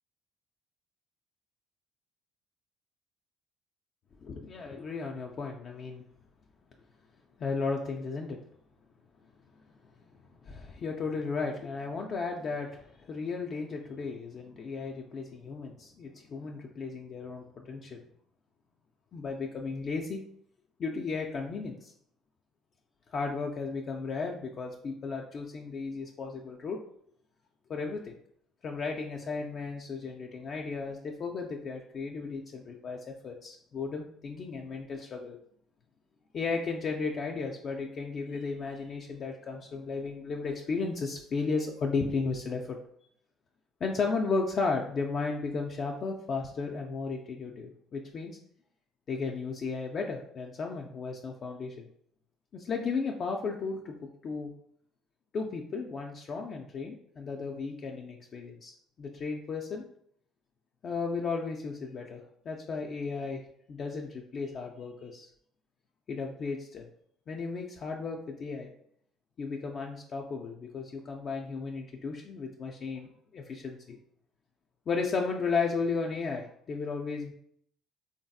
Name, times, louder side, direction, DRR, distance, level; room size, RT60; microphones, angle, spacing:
voice 1, 4.3-6.0 7.4-8.4 10.4-18.0 19.1-20.2 20.8-21.9 23.1-26.8 27.7-28.1 28.6-35.4 36.3-42.8 43.8-48.4 49.1-51.9 52.5-53.9 54.2-54.5 55.3-58.7 59.0-59.8 60.8-63.4 63.7-65.3 66.1-66.9 67.3-68.7 69.4-74.0 74.9-77.3, left 4 dB, 50° left, 1 dB, 0.3 m, -34 dB
3.3 x 2.6 x 2.3 m, 0.67 s
supercardioid pair, 85°, 0 cm